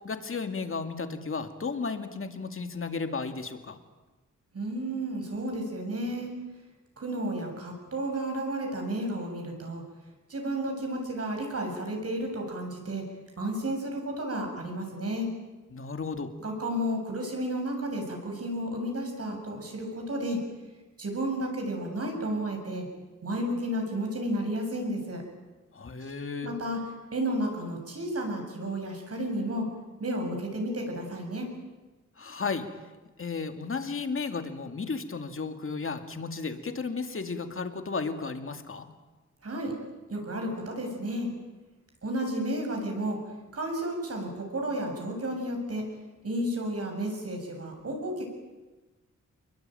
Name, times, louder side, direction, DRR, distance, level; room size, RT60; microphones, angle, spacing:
voice 1, 0.0-3.8 15.7-16.3 25.7-26.5 32.2-32.7 33.2-38.9, left 4 dB, 45° left, 7 dB, 2.3 m, -34 dB
voice 2, 4.5-6.3 7.0-9.8 10.3-13.0 13.4-15.3 16.4-20.4 21.0-22.9 23.2-25.2 26.4-26.8 27.1-29.7 30.0-31.5 39.4-39.7 40.1-41.3 42.0-43.2 43.5-45.8 46.2-48.3, right 1 dB, 50° right, 2 dB, 7.4 m, -32 dB
28.5 x 22.5 x 9.2 m, 1.2 s
wide cardioid pair, 175°, 30 cm